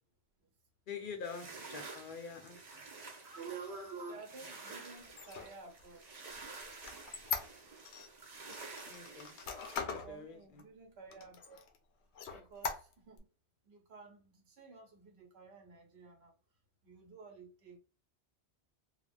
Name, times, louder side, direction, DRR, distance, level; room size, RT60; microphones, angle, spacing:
voice 1, 0.9-2.8 8.9-9.4 9.8-10.6, left 5 dB, 55° left, 0.8 m, -46 dB
sound 1, 1.2-9.8, right 3 dB, 45° right, 0.7 m, -50 dB
voice 2, 3.1-6.2 9.8-11.6 12.3-13.3 13.6-16.3 16.8-17.8, right 4 dB, 75° right, 1.1 m, -51 dB
Squeak, 5.1-8.1 8.5-10.1 10.6-10.7 11.1-11.8 12.1-13.2, left 5 dB, 85° left, 0.9 m, -41 dB
3.3 x 2.2 x 2.5 m
omnidirectional pair, 1.1 m